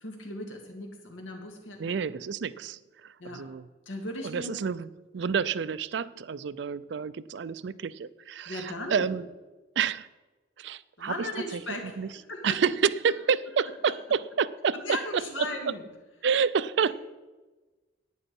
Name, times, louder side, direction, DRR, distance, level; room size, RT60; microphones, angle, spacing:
voice 1, 0.0-2.0 3.2-3.4 3.9-4.5 8.5-9.1 11.0-12.6 14.7-15.8 16.8-16.9, left 1 dB, 90° left, 2 dB, 2.3 m, -37 dB
voice 2, 1.8-2.8 3.3-3.6 4.2-4.9 5.1-9.3 9.8-10.1 10.6-11.1 12.0-12.1 12.4-14.8 15.4-15.5 16.2-16.9, right 6 dB, 65° right, 17 dB, 0.4 m, -28 dB
11.0 x 9.3 x 5.3 m, 1.2 s
head